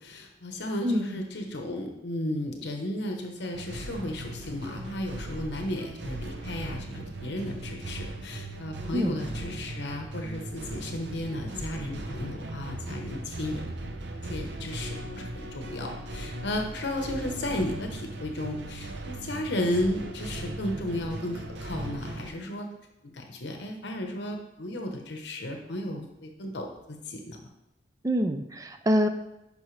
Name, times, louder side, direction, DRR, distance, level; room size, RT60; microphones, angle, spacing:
voice 1, 0.0-13.6 14.3-22.7 23.0-27.4, left 1 dB, 70° left, 3 dB, 1.0 m, -34 dB
voice 2, 0.8-1.2 8.9-9.2 28.0-29.1, equal, 20° right, 8 dB, 0.5 m, -25 dB
sound 1, 3.5-22.3, right 1 dB, 70° right, 0.8 m, -38 dB
10.5 x 5.3 x 3.2 m, 0.89 s
head